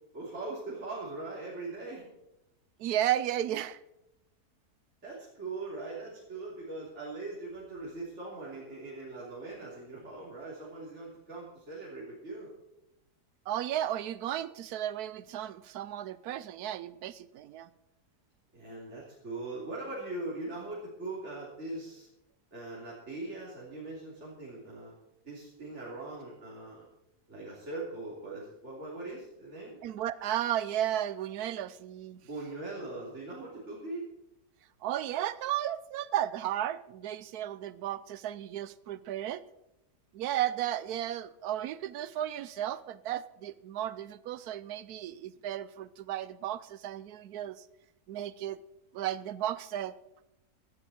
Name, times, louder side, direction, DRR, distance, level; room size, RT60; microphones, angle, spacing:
voice 1, 0.1-2.1 5.0-12.5 18.5-22.1 22.5-24.9 25.2-26.9 27.3-29.8 32.2-34.1, right 2 dB, 45° right, -7 dB, 3.6 m, -41 dB
voice 2, 2.8-3.8 13.5-17.7 29.8-32.2 34.8-39.4 40.1-47.5 48.1-48.6 48.9-49.9, right 12 dB, 75° right, 17 dB, 1.1 m, -34 dB
16.0 x 12.0 x 4.3 m, 0.88 s
omnidirectional pair, 1.7 m